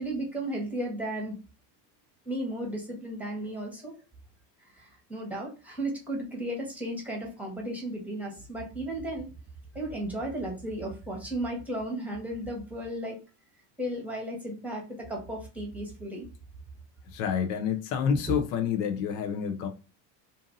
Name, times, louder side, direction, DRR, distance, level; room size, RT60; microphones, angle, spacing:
voice 1, 0.0-1.3 2.2-3.9 4.6-9.3 9.7-13.2 13.8-16.3, right 1 dB, 5° right, 1.0 m, -34 dB
voice 2, 17.1-19.7, left 7 dB, 75° left, 0.7 m, -28 dB
2.7 x 2.5 x 2.6 m
supercardioid pair, 100°, 46 cm